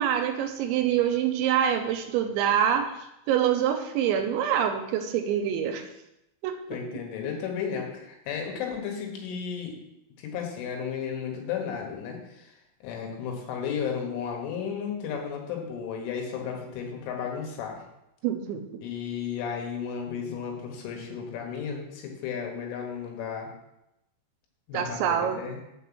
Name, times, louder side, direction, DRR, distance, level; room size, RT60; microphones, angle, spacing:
voice 1, 0.0-2.9 3.3-5.8 6.4-6.5 18.2-18.7 24.7-25.4, right 9 dB, 80° right, 6 dB, 3.0 m, -25 dB
voice 2, 6.7-9.7 10.2-12.5 12.8-17.8 18.8-23.5 24.7-25.6, left 7 dB, 85° left, 1 dB, 4.0 m, -34 dB
6.8 x 5.9 x 7.1 m, 0.88 s
omnidirectional pair, 5.5 m